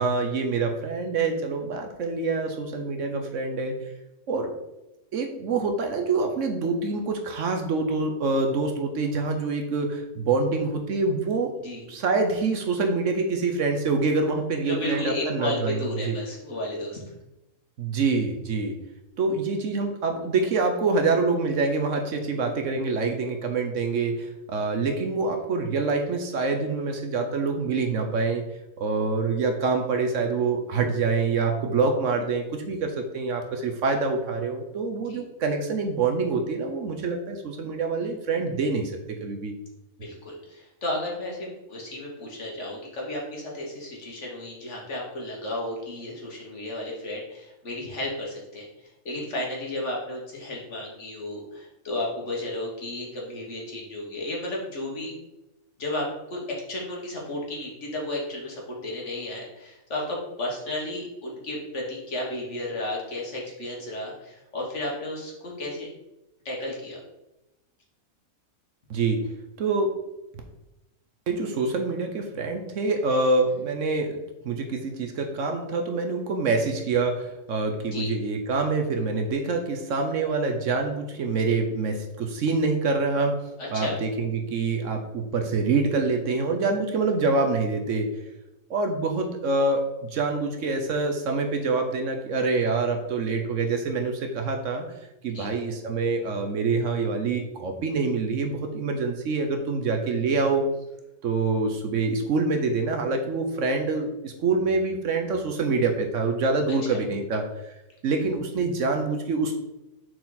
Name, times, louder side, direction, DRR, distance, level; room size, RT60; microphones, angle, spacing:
voice 1, 0.0-3.7 4.3-4.5 5.1-11.5 11.9-16.2 17.8-18.8 19.2-28.4 28.8-39.5 68.9-69.2 69.6-69.9 71.3-74.2 74.4-83.3 83.7-88.1 88.7-94.9 95.2-100.6 101.2-107.7 108.0-109.5, right 3 dB, 65° right, 4 dB, 1.1 m, -26 dB
voice 2, 14.7-17.0 35.1-35.2 40.0-55.1 55.8-65.9 66.5-67.0 77.9-78.1 83.6-83.9 95.3-95.5 106.9-107.0, left 1 dB, 55° left, -2 dB, 1.8 m, -33 dB
6.4 x 4.3 x 4.0 m, 0.94 s
omnidirectional pair, 1.5 m